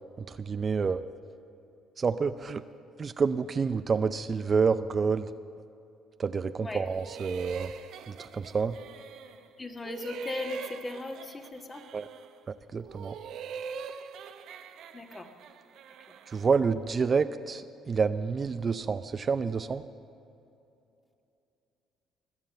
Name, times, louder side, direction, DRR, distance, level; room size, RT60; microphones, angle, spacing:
voice 1, 0.3-1.0 2.0-2.6 3.0-5.3 6.2-7.7 8.1-8.8 11.9-12.1 12.5-13.1 16.3-19.8, right 5 dB, 40° right, 11 dB, 0.5 m, -28 dB
sound 1, 6.8-9.5 9.8-12.4 12.8-16.6, right 6 dB, 70° right, 0.8 m, -43 dB
voice 2, 9.6-11.8 14.9-15.3, left 2 dB, 25° left, 4 dB, 1.6 m, -37 dB
21.5 x 7.3 x 7.7 m, 2.7 s
supercardioid pair, 70°, 0 cm